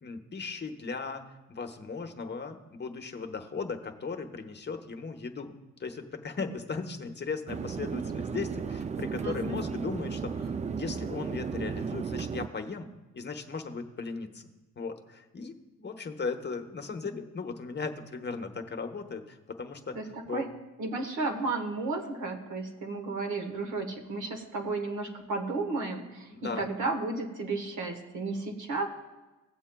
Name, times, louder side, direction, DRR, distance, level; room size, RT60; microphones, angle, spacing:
voice 1, 0.0-5.5 5.8-12.9 13.1-14.5 14.8-20.0 20.2-20.5 26.3-26.7, left 4 dB, 35° left, 4 dB, 1.0 m, -37 dB
sound 1, 7.5-12.5, right 6 dB, 25° right, 0.3 m, -34 dB
voice 2, 9.2-9.6 19.9-20.5 20.8-28.9, right 3 dB, 80° right, 3 dB, 1.5 m, -33 dB
18.0 x 7.2 x 2.3 m, 1.1 s
cardioid pair, 90°, 30 cm